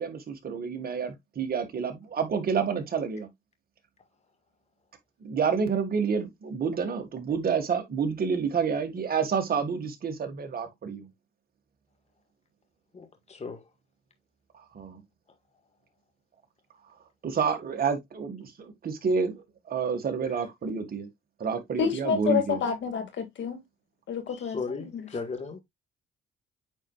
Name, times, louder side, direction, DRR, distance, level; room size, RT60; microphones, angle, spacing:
voice 1, 0.0-3.3 5.2-11.1 14.7-15.0 17.2-21.1 21.4-22.6, right 6 dB, 50° right, 2.0 m, -29 dB
voice 2, 12.9-13.7 20.3-20.5 24.3-25.6, left 4 dB, 35° left, 1.8 m, -37 dB
voice 3, 21.8-23.6 24.1-25.0, left 7 dB, 70° left, 2.2 m, -29 dB
9.0 x 4.5 x 2.4 m
cardioid pair, 90°, 20 cm